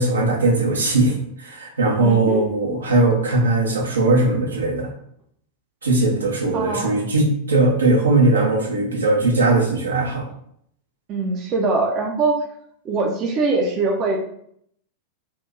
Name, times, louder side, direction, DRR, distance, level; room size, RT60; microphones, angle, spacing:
voice 1, 0.0-4.9 5.8-10.3, right 2 dB, 75° right, 0 dB, 0.8 m, -19 dB
voice 2, 1.9-2.5 6.5-7.0 11.1-12.4 12.8-14.2, right 3 dB, 35° right, 0 dB, 0.5 m, -22 dB
2.7 x 2.6 x 3.5 m, 0.68 s
figure-of-eight pair, 90°, 0 cm